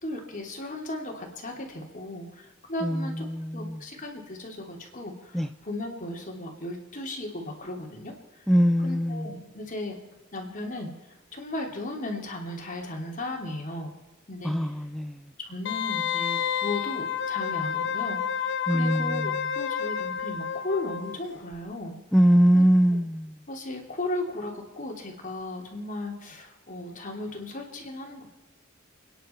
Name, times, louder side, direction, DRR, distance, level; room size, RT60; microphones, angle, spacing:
voice 1, 0.0-3.2 3.5-8.1 8.8-10.0 10.3-13.9 14.3-14.7 15.4-22.0 22.5-22.6 22.9-23.0 23.5-28.3, left 1 dB, 40° left, 2 dB, 3.0 m, -36 dB
voice 2, 2.8-3.8 5.3-5.5 8.5-9.3 14.4-15.2 18.7-19.3 22.1-23.4, equal, ahead, 8 dB, 0.5 m, -22 dB
Wind instrument woodwind instrument, 15.7-21.2 21.5-21.6, left 8 dB, 60° left, 0.8 m, -30 dB
29.5 x 10.5 x 4.5 m, 1.1 s
head